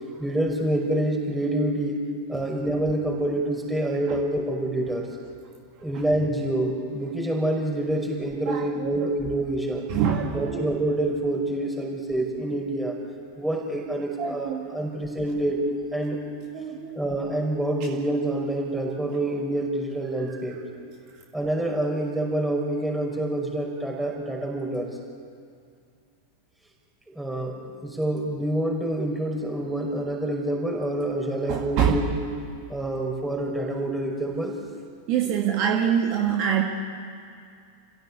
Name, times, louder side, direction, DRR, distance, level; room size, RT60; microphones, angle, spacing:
voice 1, 0.2-5.1 5.8-9.9 10.3-13.0 13.4-15.6 15.9-16.2 17.0-20.6 21.3-24.9 27.1-32.1 32.7-34.5, right 1 dB, 5° right, 0 dB, 5.6 m, -27 dB
voice 2, 8.5-9.1 9.9-10.7 14.2-14.7 16.5-17.0 31.5-32.0 35.1-36.6, right 8 dB, 40° right, 0 dB, 2.1 m, -25 dB
27.5 x 16.0 x 8.4 m, 2.3 s
figure-of-eight pair, 90°, 0 cm